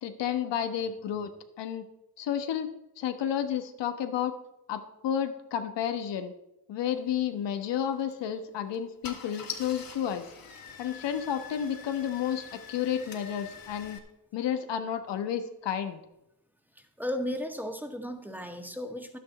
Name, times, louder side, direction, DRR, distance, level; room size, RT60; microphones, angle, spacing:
voice 1, 0.0-1.3 1.6-1.8 2.2-2.7 3.0-4.3 4.7-6.3 6.7-10.3 10.8-14.0 14.3-16.0, left 9 dB, 80° left, 8 dB, 1.3 m, -31 dB
Car / Engine starting, 7.9-8.1 8.7-8.8 9.0-14.0, left 6 dB, 55° left, 2.4 m, -44 dB
voice 2, 17.0-19.2, left 1 dB, 5° right, 5 dB, 1.9 m, -35 dB
11.5 x 9.8 x 4.2 m, 0.86 s
supercardioid pair, 50°, 42 cm